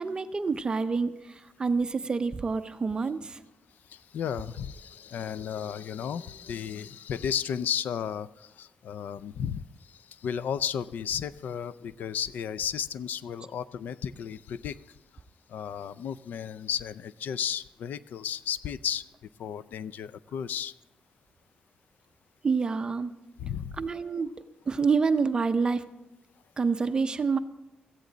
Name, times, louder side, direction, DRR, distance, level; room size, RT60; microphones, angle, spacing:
voice 1, 0.0-3.4 22.4-23.1 23.8-24.3 24.7-25.8 26.6-27.4, right 4 dB, 30° right, 10 dB, 0.5 m, -27 dB
voice 2, 3.9-14.8 15.5-19.0 19.4-20.7 23.4-23.8, left 8 dB, 80° left, 17 dB, 0.4 m, -34 dB
16.5 x 14.5 x 4.0 m, 0.99 s
wide cardioid pair, 135°, 3 cm